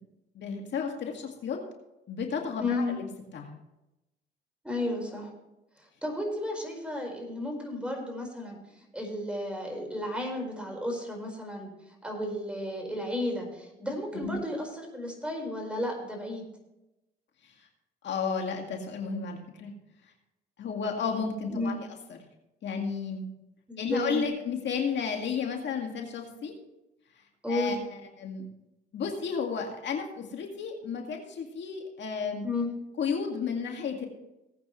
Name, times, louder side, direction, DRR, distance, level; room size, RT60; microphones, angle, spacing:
voice 1, 0.3-1.6 2.1-3.1 3.3-3.5 14.1-14.3 17.4-17.7 18.0-19.7 20.0-20.1 20.6-22.2 22.6-23.3 23.8-26.5 27.2-28.4 28.9-32.4 33.0-34.1, left 6 dB, 65° left, 2 dB, 2.1 m, -33 dB
voice 2, 2.6-2.9 4.6-5.3 5.8-8.6 8.9-11.7 12.0-16.5 21.5-21.8 23.7-24.2 27.4-27.8 32.4-32.7, left 1 dB, 5° right, 1 dB, 4.7 m, -33 dB
18.5 x 8.8 x 3.2 m, 0.94 s
cardioid pair, 90°, 20 cm